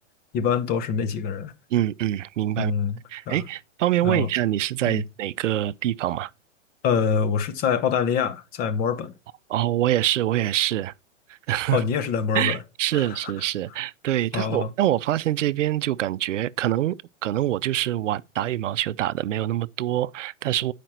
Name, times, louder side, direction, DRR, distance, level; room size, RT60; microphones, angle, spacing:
voice 1, 0.3-1.5 2.6-3.0 3.3-3.4 4.0-4.3 4.9-5.0 6.8-9.1 11.7-12.6 12.9-13.3 14.3-14.7, left 6 dB, 25° left, 0.8 m, -25 dB
voice 2, 1.7-2.7 3.1-6.3 9.5-10.9 11.5-11.8 12.3-17.0 17.2-20.7, right 13 dB, 85° right, 0.5 m, -25 dB
9.2 x 5.0 x 4.3 m
hypercardioid pair, 135°, 37 cm